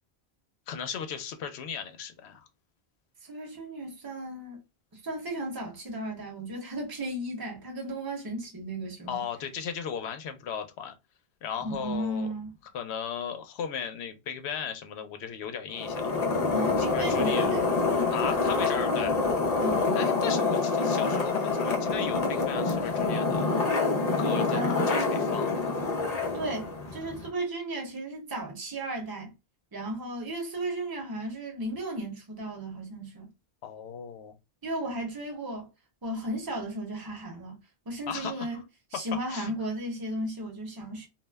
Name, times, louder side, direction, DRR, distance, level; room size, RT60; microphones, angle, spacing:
voice 1, 0.7-2.5 9.1-10.9 11.4-12.3 12.7-16.2 16.9-17.5 18.1-19.2 20.0-23.5 24.2-25.7 33.6-34.3 38.1-38.6 39.3-39.5, left 7 dB, 85° left, 0.9 m, -36 dB
voice 2, 3.2-4.6 5.0-9.2 11.6-12.5 16.5-17.7 19.6-20.0 24.5-24.9 26.3-29.3 29.7-33.3 34.6-35.7 36.0-37.6 37.9-38.6 38.9-41.1, right 1 dB, 25° right, 0.8 m, -35 dB
sound 1, 15.7-27.3, left 3 dB, 45° left, 0.6 m, -26 dB
2.4 x 2.1 x 3.3 m
omnidirectional pair, 1.1 m